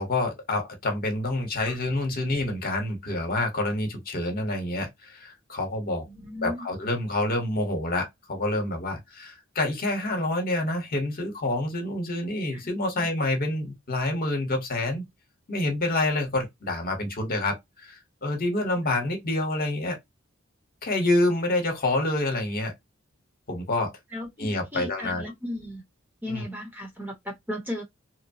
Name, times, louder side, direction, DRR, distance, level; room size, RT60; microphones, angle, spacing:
voice 1, 0.0-6.0 6.4-15.0 15.5-20.0 20.8-22.7 23.5-23.9 24.4-25.3 26.3-26.4, left 2 dB, 45° left, 1.0 m, -27 dB
voice 2, 6.1-6.6 12.5-13.1 24.1-25.8 26.2-27.8, left 1 dB, 10° right, 0.9 m, -36 dB
2.9 x 2.1 x 2.5 m
head